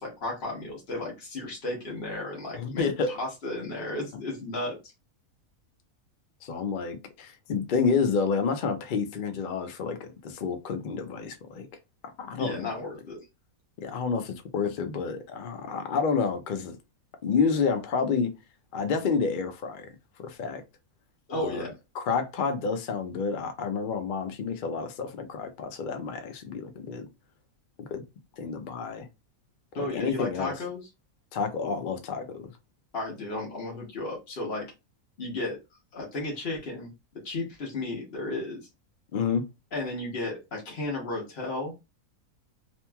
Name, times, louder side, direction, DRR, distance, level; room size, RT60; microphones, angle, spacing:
voice 1, 0.0-4.8 12.4-13.2 21.3-21.7 29.7-30.9 32.9-34.7 35.2-35.6 35.9-36.9 37.2-38.7 39.7-41.7, left 2 dB, 45° left, 1.0 m, -34 dB
voice 2, 2.5-3.1 6.4-11.7 12.2-12.7 13.8-16.8 17.2-18.3 18.7-19.9 20.2-20.6 21.3-27.1 27.9-28.0 28.4-29.1 29.7-30.5 31.3-32.5 39.1-39.4, left 5 dB, 80° left, 0.4 m, -29 dB
2.9 x 2.6 x 2.2 m
omnidirectional pair, 1.6 m